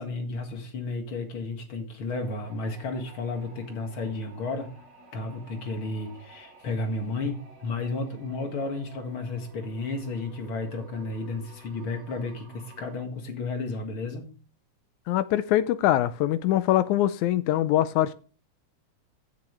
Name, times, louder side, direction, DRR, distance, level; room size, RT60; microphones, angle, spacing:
voice 1, 0.0-4.8 5.1-14.3, left 3 dB, 45° left, 2.4 m, -33 dB
sound 1, 2.1-12.9, right 3 dB, 70° right, 6.4 m, -52 dB
voice 2, 15.1-18.1, left 13 dB, 80° left, 1.9 m, -23 dB
14.5 x 6.8 x 3.2 m
omnidirectional pair, 3.7 m